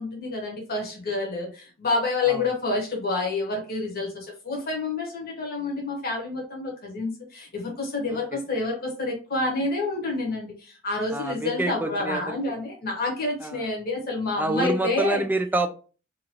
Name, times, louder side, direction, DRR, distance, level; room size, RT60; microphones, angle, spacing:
voice 1, 0.0-15.2, left 3 dB, 50° left, 0 dB, 1.1 m, -28 dB
voice 2, 8.1-8.4 11.1-12.4 13.4-13.6 14.4-15.7, right 2 dB, 10° right, 6 dB, 0.3 m, -27 dB
2.8 x 2.5 x 2.8 m, 0.36 s
head